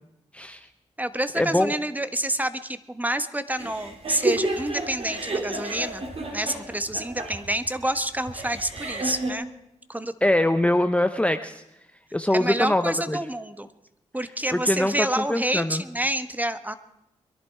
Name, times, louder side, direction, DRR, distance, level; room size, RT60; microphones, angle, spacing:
voice 1, 0.3-0.7 1.4-1.7 10.2-11.6 12.1-12.8 13.1-13.2 14.5-15.8, left 1 dB, 10° left, 9 dB, 0.8 m, -23 dB
voice 2, 1.0-6.0 6.3-9.5 9.9-10.1 12.3-13.7 14.1-16.7, right 1 dB, 10° right, 11 dB, 1.3 m, -28 dB
sound 1, 3.6-9.3, right 2 dB, 50° right, 3.8 m, -31 dB
23.0 x 11.0 x 4.7 m, 0.87 s
supercardioid pair, 45°, 13 cm